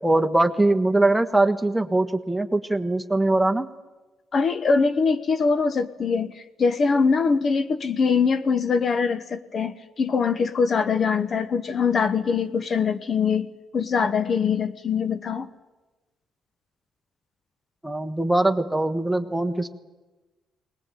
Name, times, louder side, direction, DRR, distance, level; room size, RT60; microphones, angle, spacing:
voice 1, 0.0-3.7 17.8-19.7, right 2 dB, 5° right, 5 dB, 1.4 m, -22 dB
voice 2, 4.3-6.3 6.6-15.5, left 5 dB, 50° left, 12 dB, 1.1 m, -23 dB
20.5 x 20.0 x 9.2 m, 1.2 s
cardioid pair, 90°, 0 cm